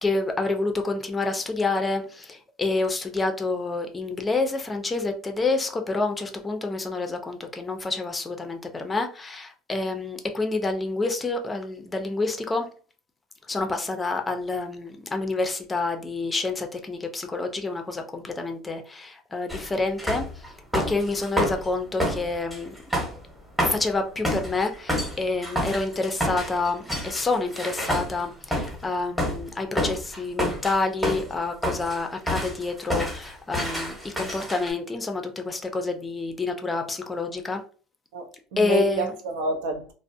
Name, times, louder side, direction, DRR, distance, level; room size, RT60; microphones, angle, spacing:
voice 1, 0.0-12.7 13.5-20.3 20.7-22.7 23.7-37.6 38.6-39.1, left 3 dB, 15° left, 0.4 m, -28 dB
sound 1, 19.5-19.7 20.0-21.7 22.0-28.9 29.2-29.5 29.8-31.3 31.6-32.0 32.3-34.7, equal, 5° right, 0.8 m, -28 dB
voice 2, 38.1-39.9, right 2 dB, 85° right, 0.5 m, -29 dB
2.4 x 2.0 x 2.5 m
supercardioid pair, 120°, 0 cm